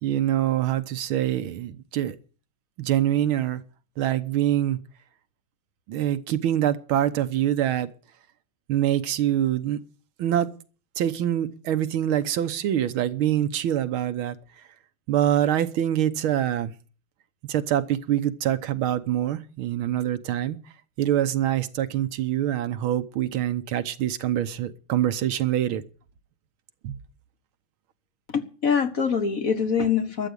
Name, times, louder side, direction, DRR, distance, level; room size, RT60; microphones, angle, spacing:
voice 1, 0.0-2.2 2.8-3.6 4.0-4.8 5.9-7.9 8.7-9.8 10.2-10.5 11.0-14.6 15.1-16.7 17.5-20.6 21.0-25.8 26.8-27.0, right 11 dB, 80° right, 1.8 m, -25 dB
voice 2, 28.3-30.3, left 6 dB, 50° left, 1.3 m, -24 dB
13.0 x 8.2 x 9.9 m
omnidirectional pair, 2.3 m